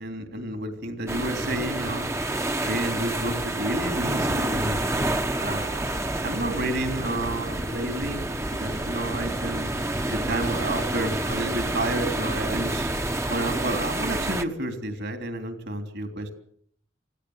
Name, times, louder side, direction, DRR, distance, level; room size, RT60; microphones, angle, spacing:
voice 1, 0.0-2.1 2.7-4.9 5.4-5.8 6.2-9.7 10.1-12.9 13.3-16.3, right 1 dB, 60° right, 7 dB, 3.4 m, -30 dB
sound 1, 1.1-14.4, right 1 dB, 15° right, 1.1 m, -28 dB
25.0 x 16.0 x 8.1 m, 0.64 s
head